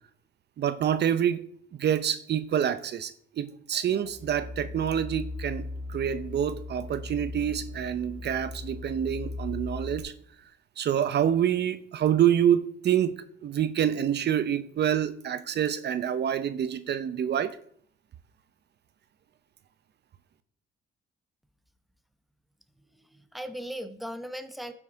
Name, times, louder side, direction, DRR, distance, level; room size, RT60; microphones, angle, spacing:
voice 1, 0.6-1.4 1.8-10.1 10.8-13.2 13.4-17.6, right 9 dB, 55° right, 0.7 m, -27 dB
sound 1, 4.1-10.0, left 2 dB, 30° right, 1.6 m, -38 dB
voice 2, 22.8-24.7, equal, ahead, 1.0 m, -38 dB
12.0 x 6.2 x 5.1 m
cardioid pair, 90°, 20 cm